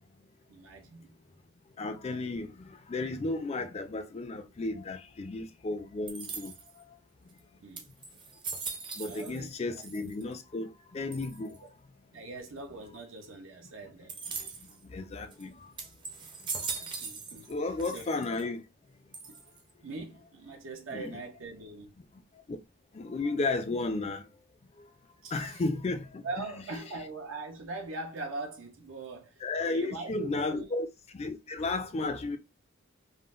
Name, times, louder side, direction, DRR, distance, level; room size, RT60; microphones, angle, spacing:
voice 1, 0.5-1.1 7.6-7.9 9.0-10.1 12.1-14.2 16.8-18.1 19.3-19.4 19.8-21.9 25.2-25.6 26.2-30.7, right 3 dB, 70° right, 0.6 m, -42 dB
voice 2, 1.8-6.8 9.0-11.7 14.3-15.7 16.7-16.8 17.5-18.6 20.9-21.2 22.5-22.6 22.9-24.3 24.8-24.9 25.3-26.5 29.4-30.9 31.1-32.4, left 3 dB, 30° left, 0.4 m, -34 dB
sound 1, 6.1-6.8 7.4-7.5 7.8-9.5 9.8-10.4 11.1-11.6 14.1-14.8 15.3-15.4 15.8-17.5 17.8-18.4 19.1-19.7, right 5 dB, 25° right, 0.5 m, -40 dB
3.6 x 2.0 x 2.4 m
head